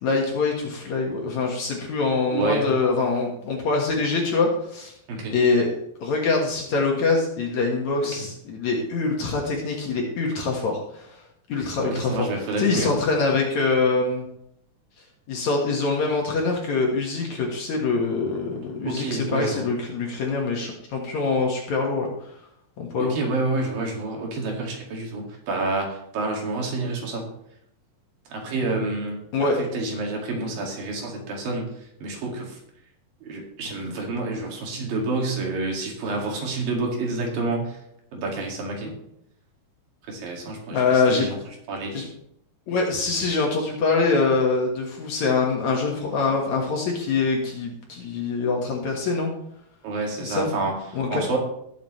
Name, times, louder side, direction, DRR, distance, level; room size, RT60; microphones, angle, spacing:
voice 1, 0.0-4.9 5.3-5.7 6.0-11.1 11.5-12.3 12.6-14.3 15.3-22.1 22.8-23.1 29.3-29.6 33.7-33.8 40.7-41.3 41.9-42.1 42.7-49.3 50.2-50.5 50.9-51.2, left 4 dB, 60° left, 0 dB, 2.6 m, -24 dB
voice 2, 2.3-2.8 5.1-5.4 8.0-8.1 11.8-13.0 18.8-19.7 23.0-27.3 28.3-32.6 33.2-37.8 38.1-38.9 40.0-41.4 41.7-42.0 49.8-51.4, right 3 dB, 70° right, 0 dB, 3.8 m, -29 dB
19.0 x 7.3 x 3.2 m, 0.75 s
omnidirectional pair, 4.2 m